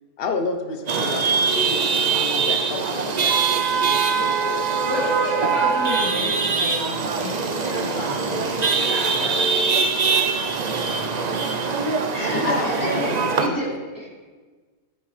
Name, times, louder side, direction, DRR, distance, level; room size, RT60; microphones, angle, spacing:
voice 1, 0.2-4.7 12.2-13.6, left 4 dB, 45° left, 5 dB, 1.0 m, -31 dB
Chatter / Vehicle horn car horn honking / Traffic noise roadway noise, 0.9-13.5, right 5 dB, 45° right, 0.5 m, -22 dB
voice 2, 4.8-9.4, left 1 dB, 85° left, -7 dB, 3.4 m, -31 dB
voice 3, 12.1-14.2, equal, 15° left, -7 dB, 3.4 m, -28 dB
14.5 x 9.1 x 3.3 m, 1.4 s
omnidirectional pair, 1.5 m